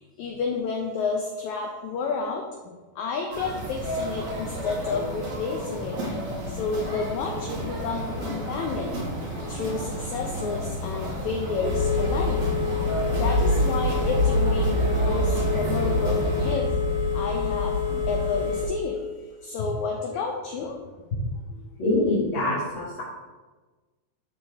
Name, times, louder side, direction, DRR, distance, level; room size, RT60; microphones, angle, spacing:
voice 1, 0.2-6.0 6.5-9.0 9.5-12.4 13.1-16.7 17.1-17.8 18.1-19.0 19.4-20.8 21.5-21.7, left 5 dB, 80° left, 2 dB, 1.7 m, -30 dB
sound 1, 3.3-16.5, right 1 dB, 55° right, 2.9 m, -32 dB
Telephone, 11.6-18.6, left 2 dB, 80° right, 1.0 m, -25 dB
voice 2, 21.8-23.0, left 2 dB, 45° left, -9 dB, 1.8 m, -24 dB
12.0 x 4.5 x 3.5 m, 1.3 s
omnidirectional pair, 4.1 m